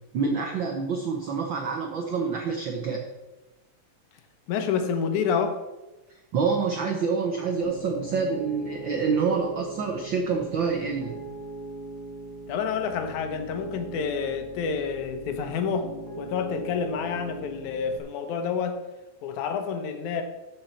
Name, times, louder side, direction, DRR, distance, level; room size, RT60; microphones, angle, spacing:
voice 1, 0.1-3.0 6.3-11.2, right 5 dB, 70° right, 2 dB, 1.1 m, -27 dB
voice 2, 4.5-5.6 12.5-18.8 19.2-20.2, left 6 dB, 90° left, 7 dB, 2.4 m, -28 dB
Piano, 7.6-18.0, right 2 dB, 30° right, 0.4 m, -40 dB
13.5 x 5.6 x 4.4 m, 1.1 s
omnidirectional pair, 3.3 m